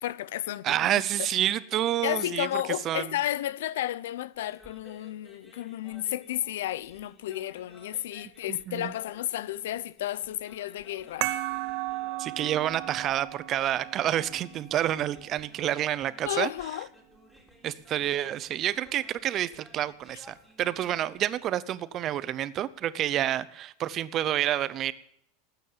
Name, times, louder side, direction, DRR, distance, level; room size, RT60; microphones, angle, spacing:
voice 1, 0.0-0.7 1.2-1.3 2.0-11.3 16.3-16.9, left 13 dB, 90° left, 0.8 m, -32 dB
voice 2, 0.6-2.5 2.8-3.1 8.5-8.9 12.2-16.5 17.6-24.9, right 12 dB, 30° right, 0.8 m, -29 dB
sound 1, 4.4-21.3, left 1 dB, 5° left, 3.3 m, -57 dB
sound 2, 11.2-16.3, right 17 dB, 50° right, 1.1 m, -36 dB
19.0 x 9.2 x 7.5 m
supercardioid pair, 165°, 0 cm